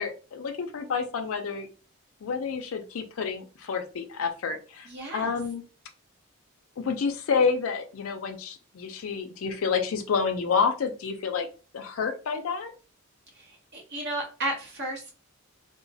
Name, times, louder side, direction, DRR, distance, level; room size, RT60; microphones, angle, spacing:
voice 1, 0.0-1.7 2.2-5.6 6.8-11.5 11.7-12.7, left 5 dB, 70° left, 5 dB, 0.4 m, -29 dB
voice 2, 4.8-5.3 13.4-15.1, right 1 dB, 50° right, 0 dB, 1.0 m, -33 dB
2.9 x 2.0 x 2.6 m, 0.35 s
head